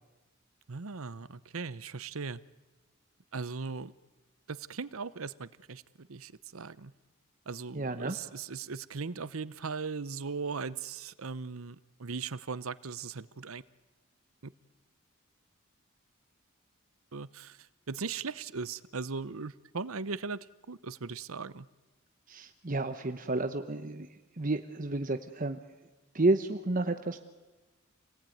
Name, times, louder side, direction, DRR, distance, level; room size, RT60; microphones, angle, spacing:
voice 1, 0.7-2.4 3.3-3.9 4.5-6.9 7.5-13.6 17.1-20.4 20.7-21.6, right 4 dB, 80° right, 16 dB, 0.9 m, -38 dB
voice 2, 7.7-8.2 22.3-24.1 24.4-25.6 26.1-27.2, right 2 dB, 40° right, 8 dB, 1.0 m, -31 dB
28.5 x 19.5 x 9.3 m, 1.2 s
head